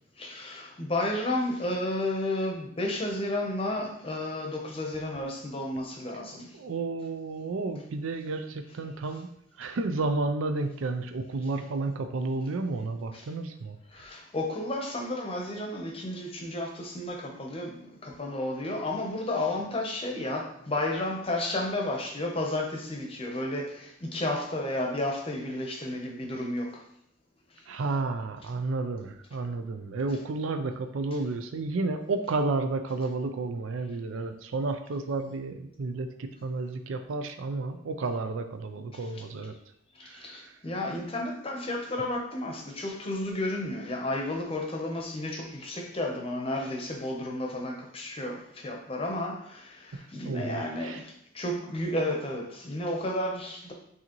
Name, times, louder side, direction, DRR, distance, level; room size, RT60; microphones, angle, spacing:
voice 1, 0.2-6.5 13.1-13.2 13.9-26.7 40.0-49.8 50.1-51.1 51.3-53.7, left 1 dB, 30° left, 1 dB, 0.7 m, -32 dB
voice 2, 6.5-9.3 9.6-13.8 27.7-39.5 40.0-40.5 50.2-51.0, right 3 dB, 85° right, 7 dB, 0.5 m, -31 dB
6.3 x 2.7 x 3.0 m, 0.72 s
head